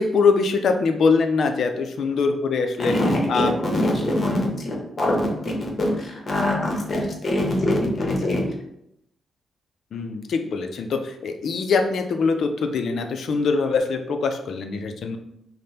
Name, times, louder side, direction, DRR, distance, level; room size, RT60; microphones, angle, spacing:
voice 1, 0.0-2.9 3.3-3.5 9.9-15.2, left 4 dB, 65° left, 6 dB, 0.4 m, -23 dB
voice 2, 2.9-8.4, left 1 dB, 35° left, -1 dB, 0.9 m, -23 dB
5.1 x 2.1 x 2.8 m, 0.80 s
wide cardioid pair, 145°, 0 cm